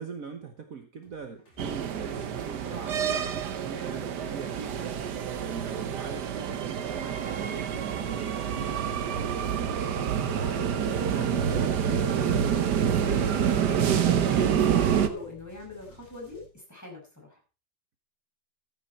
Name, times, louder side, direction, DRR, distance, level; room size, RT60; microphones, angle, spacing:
voice 1, 0.0-5.0 5.4-10.3, right 6 dB, 55° right, 6 dB, 1.6 m, -42 dB
sound 1, 1.0-16.5, right 2 dB, 40° left, 4.2 m, -54 dB
sound 2, 1.6-15.1, right 8 dB, 70° right, 1.6 m, -27 dB
voice 2, 10.4-17.4, left 2 dB, 10° left, -1 dB, 5.8 m, -41 dB
14.5 x 9.1 x 4.4 m, 0.32 s
omnidirectional pair, 1.9 m